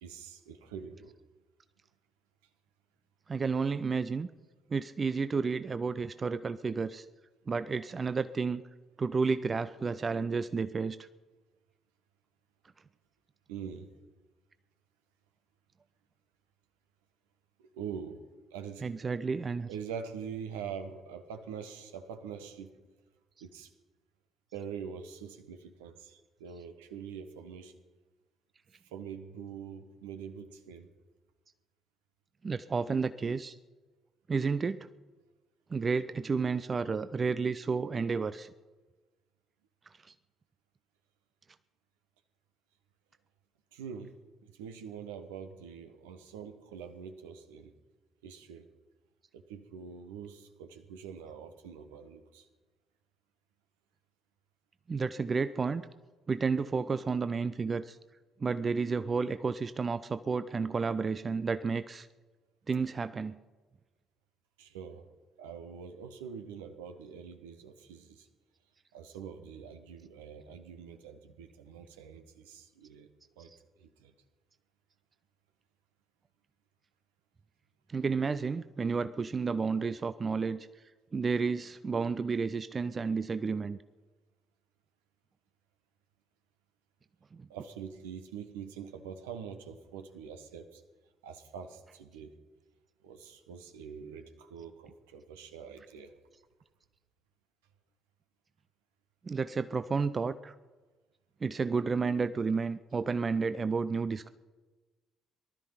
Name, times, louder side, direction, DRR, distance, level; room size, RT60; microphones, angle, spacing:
voice 1, 0.0-1.2 13.5-13.9 17.6-18.2 18.5-19.0 19.7-22.7 23.4-23.7 24.5-27.7 28.7-30.9 43.7-44.2 44.4-47.7 48.2-48.7 49.3-52.5 64.6-65.1 65.4-68.3 68.9-73.1 73.4-73.5 73.8-74.1 87.5-90.8 91.2-92.3 93.0-96.1, right 7 dB, 70° right, 8 dB, 1.1 m, -44 dB
voice 2, 3.3-4.3 4.7-7.1 7.5-8.6 9.0-11.0 18.8-19.7 32.4-33.6 34.3-34.9 35.7-38.5 40.0-40.1 54.9-55.9 56.3-58.0 58.4-62.1 62.7-63.3 77.9-80.7 81.1-83.8 87.3-87.5 99.2-100.5 101.4-104.3, right 5 dB, 30° right, 13 dB, 0.5 m, -31 dB
19.5 x 12.5 x 5.7 m, 1.3 s
figure-of-eight pair, 45°, 0 cm